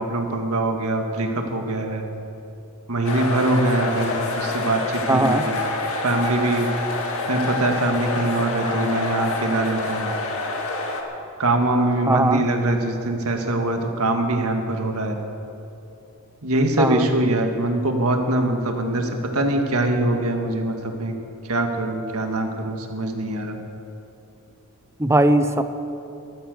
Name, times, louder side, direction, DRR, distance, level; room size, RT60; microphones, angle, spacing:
voice 1, 0.0-2.0 2.9-5.6 6.0-6.7 7.3-10.1 11.4-15.2 16.4-20.7 21.0-21.1 21.5-23.6, right 2 dB, 85° right, 4 dB, 1.8 m, -23 dB
sound 1, 3.0-11.0, left 2 dB, 75° left, 1.8 m, -27 dB
voice 2, 5.1-5.5 12.1-12.4 16.8-17.1 25.0-25.6, right 2 dB, 10° right, 10 dB, 0.6 m, -19 dB
14.0 x 13.0 x 6.7 m, 2.8 s
head